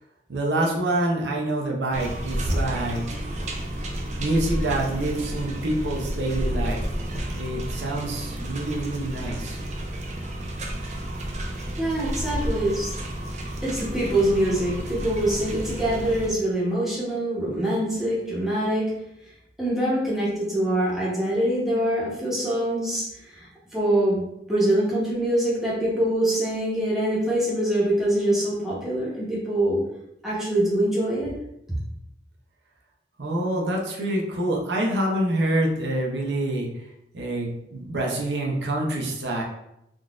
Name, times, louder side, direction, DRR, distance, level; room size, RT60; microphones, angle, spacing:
voice 1, 0.3-3.2 4.2-6.8 7.3-9.6 33.2-36.9 37.1-39.4, right 1 dB, 80° right, -1 dB, 0.6 m, -26 dB
sound 1, 1.9-16.3, right 1 dB, 40° right, 0.4 m, -31 dB
voice 2, 11.8-12.9 13.6-18.9 19.6-23.5 23.7-29.8 30.2-31.3, right 1 dB, ahead, -8 dB, 0.9 m, -24 dB
3.7 x 2.4 x 2.4 m, 0.82 s
head